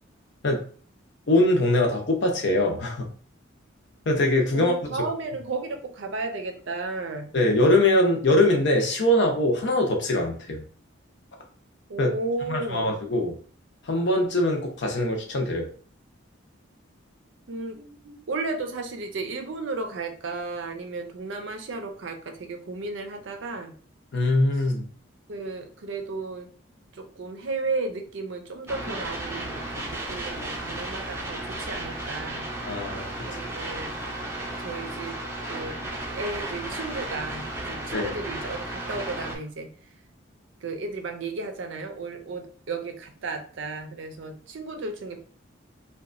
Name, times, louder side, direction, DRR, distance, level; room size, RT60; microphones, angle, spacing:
voice 1, 1.3-3.1 4.1-4.7 7.3-10.6 12.0-12.1 12.5-13.4 13.9-15.7 24.1-24.9 32.7-33.1 37.9-38.1, left 1 dB, 60° left, 2 dB, 0.6 m, -22 dB
voice 2, 4.5-7.3 11.9-12.9 17.5-23.8 25.3-26.5 26.9-32.5 33.3-34.0 34.6-35.2 35.5-35.8 36.1-39.7 40.6-45.2, right 3 dB, 70° right, 5 dB, 0.5 m, -34 dB
sound 1, 28.7-39.4, right 1 dB, 15° right, 0.5 m, -34 dB
2.8 x 2.2 x 2.5 m, 0.43 s
head